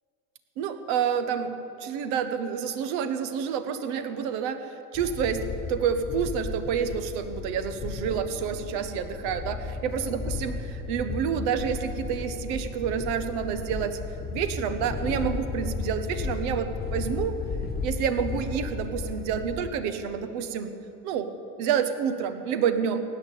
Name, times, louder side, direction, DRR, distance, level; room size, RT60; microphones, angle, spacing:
voice 1, 0.6-14.0 14.3-17.4 17.8-20.7 21.0-21.3 21.6-23.0, right 7 dB, 60° right, 9 dB, 1.4 m, -29 dB
sound 1, 4.9-19.7, left 4 dB, 20° left, 1.3 m, -34 dB
16.0 x 9.6 x 8.6 m, 3.0 s
hypercardioid pair, 85°, 44 cm